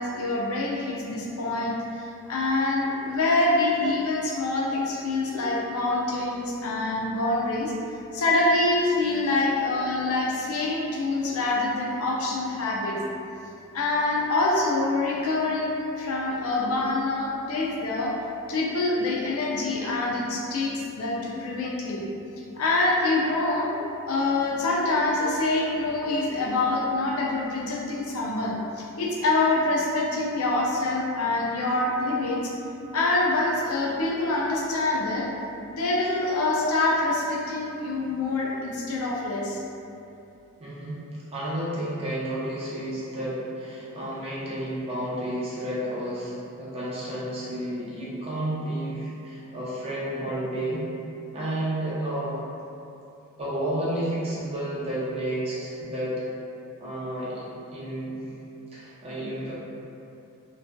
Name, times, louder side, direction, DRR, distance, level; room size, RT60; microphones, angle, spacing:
voice 1, 0.0-13.0 13.7-18.1 18.5-22.0 22.6-23.7 24.1-32.5 32.9-35.3 35.7-39.6, left 2 dB, 70° left, -3 dB, 0.4 m, -25 dB
voice 2, 40.6-41.0 41.3-50.9 51.3-52.4 53.4-56.2 56.8-57.4 57.7-58.2 58.7-59.5, right 1 dB, 25° right, -9 dB, 0.5 m, -31 dB
2.5 x 2.3 x 2.2 m, 2.7 s
head